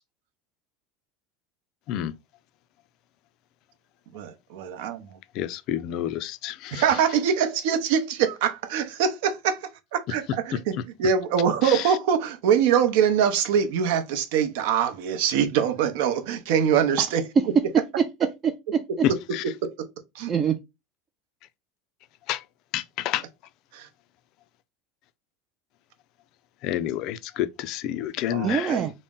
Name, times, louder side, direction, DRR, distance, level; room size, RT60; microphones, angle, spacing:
voice 1, 4.1-5.2 6.7-17.5 18.9-19.2 19.4-19.9 20.1-20.3 23.7-23.9 28.3-28.9, right 8 dB, 75° right, 0.6 m, -24 dB
voice 2, 5.3-6.8 10.5-10.6 11.6-12.0 19.0-19.4 22.3-22.4 22.7-23.2 26.6-28.8, left 12 dB, 50° left, 0.3 m, -29 dB
voice 3, 17.7-19.1 20.3-20.6 28.4-28.9, right 7 dB, 25° right, 0.3 m, -25 dB
4.0 x 2.0 x 3.6 m
supercardioid pair, 150°, 0 cm